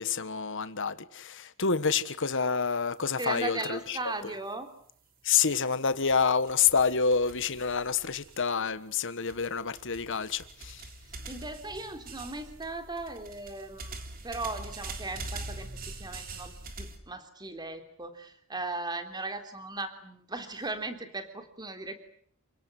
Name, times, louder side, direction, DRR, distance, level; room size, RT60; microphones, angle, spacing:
voice 1, 0.0-4.0 5.2-10.8, left 5 dB, 60° left, 1.5 m, -28 dB
voice 2, 3.2-4.7 11.3-15.7 16.0-21.9, right 2 dB, 20° right, 3.4 m, -37 dB
sound 1, 5.9-8.8 9.3-17.0, right 2 dB, 40° right, 3.5 m, -44 dB
29.0 x 18.0 x 9.8 m
head